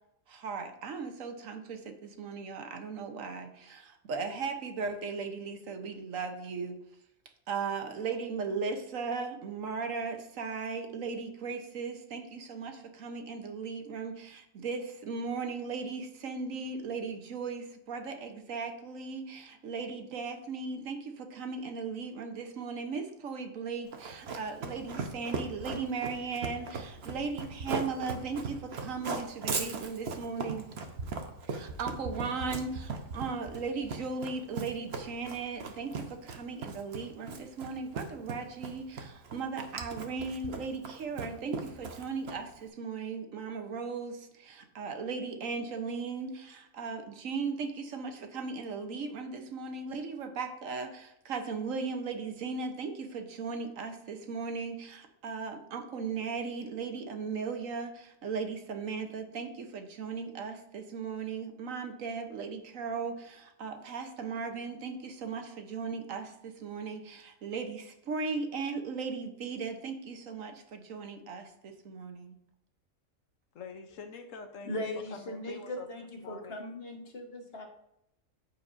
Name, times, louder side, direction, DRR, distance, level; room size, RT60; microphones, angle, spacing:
voice 1, 0.3-6.8 7.5-30.7 31.5-72.4, right 5 dB, 75° right, 6 dB, 1.3 m, -37 dB
Run, 23.9-42.6, right 4 dB, 55° right, 1.1 m, -38 dB
voice 2, 73.5-75.9 76.2-76.6, left 5 dB, 70° left, 6 dB, 1.2 m, -45 dB
voice 3, 74.6-77.6, left 1 dB, 45° left, 2 dB, 1.6 m, -39 dB
13.5 x 4.7 x 2.6 m, 0.79 s
omnidirectional pair, 1.4 m